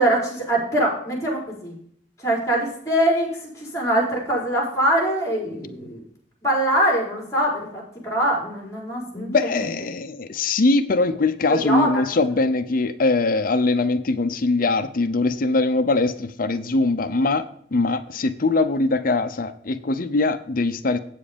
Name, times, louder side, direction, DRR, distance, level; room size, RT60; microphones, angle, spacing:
voice 1, 0.0-1.7 2.2-3.3 3.6-6.0 6.4-9.3 11.5-12.2, right 1 dB, 20° left, -3 dB, 4.4 m, -23 dB
voice 2, 9.2-17.4 17.7-21.0, left 3 dB, 50° left, 11 dB, 0.7 m, -22 dB
8.5 x 7.6 x 5.1 m, 0.62 s
head